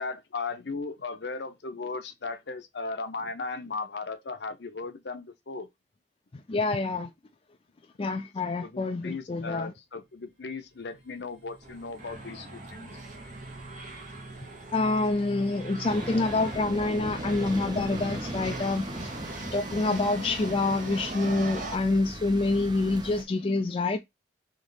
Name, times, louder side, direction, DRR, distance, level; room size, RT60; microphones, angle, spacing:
voice 1, 0.0-5.7 8.6-13.0, left 4 dB, 65° left, 0.7 m, -36 dB
voice 2, 6.5-7.1 8.0-9.7 14.7-18.9 19.5-24.0, left 3 dB, 30° left, 0.4 m, -27 dB
sound 1, 10.2-10.3 10.7-19.2, right 2 dB, 70° right, 1.6 m, -46 dB
sound 2, 11.6-21.8, right 2 dB, 45° right, 1.0 m, -41 dB
sound 3, 15.8-23.2, right 1 dB, 25° right, 0.7 m, -39 dB
3.4 x 3.0 x 4.0 m
head